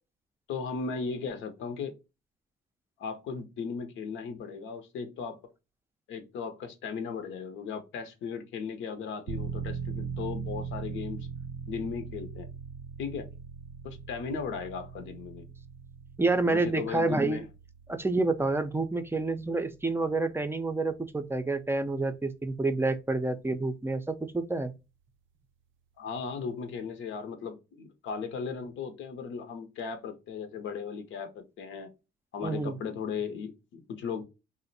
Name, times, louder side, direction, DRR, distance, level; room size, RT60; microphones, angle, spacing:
voice 1, 0.5-1.9 3.0-5.4 6.1-11.3 11.7-12.5 13.0-13.3 13.8-15.5 16.4-17.4 26.0-31.9 32.3-34.2, left 5 dB, 80° left, 0.7 m, -36 dB
sound 1, 9.3-21.8 22.1-22.2, right 7 dB, 75° right, 0.4 m, -41 dB
voice 2, 16.2-17.4 17.9-24.7 32.4-32.7, right 3 dB, 10° right, 0.4 m, -28 dB
2.5 x 2.0 x 3.9 m
cardioid pair, 90°, 20 cm